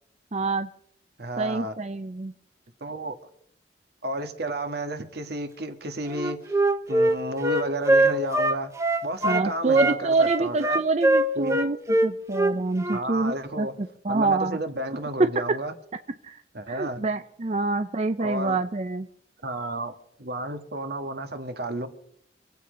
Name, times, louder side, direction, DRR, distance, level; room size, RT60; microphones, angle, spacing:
voice 1, 0.3-0.7 1.4-2.3 9.2-11.8 12.0-14.6 15.2-15.3 16.2-16.4 16.7-19.1, right 3 dB, 40° right, 8 dB, 0.6 m, -26 dB
voice 2, 1.2-1.7 2.8-3.1 4.0-6.4 6.9-8.7 9.0-10.8 11.3-11.6 12.9-13.7 14.1-15.7 16.5-17.0 18.2-18.6 19.4-19.9 20.2-21.9, right 1 dB, 65° right, 8 dB, 1.7 m, -32 dB
Wind instrument woodwind instrument, 6.1-9.5 9.7-13.0, right 2 dB, 15° right, 1.0 m, -22 dB
25.5 x 8.5 x 5.1 m, 0.71 s
head